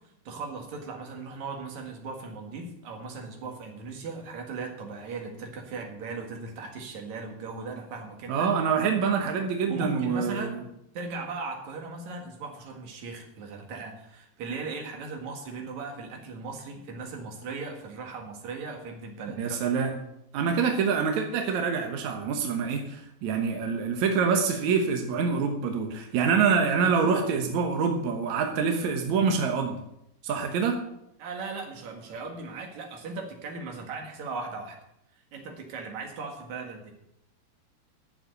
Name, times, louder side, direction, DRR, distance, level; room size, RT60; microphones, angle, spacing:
voice 1, 0.2-8.5 9.7-10.7 10.9-19.6 31.2-34.8 35.3-36.9, right 4 dB, 50° right, 2 dB, 2.6 m, -38 dB
voice 2, 8.3-10.6 19.4-19.9 20.3-29.8 30.2-30.8, right 5 dB, 70° right, 3 dB, 1.7 m, -26 dB
12.0 x 7.3 x 6.7 m, 0.80 s
omnidirectional pair, 4.9 m